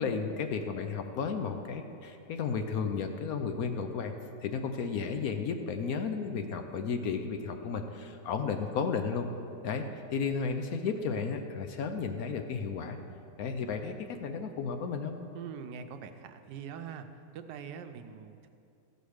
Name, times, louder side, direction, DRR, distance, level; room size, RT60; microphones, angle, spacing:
voice 1, 0.0-4.1 4.4-9.3 9.6-9.9 10.1-13.0 13.4-15.1, left 5 dB, 65° left, 6 dB, 1.1 m, -33 dB
voice 2, 15.3-17.1 17.3-18.5, right 7 dB, 90° right, 8 dB, 1.3 m, -43 dB
13.5 x 5.3 x 6.4 m, 2.7 s
omnidirectional pair, 1.8 m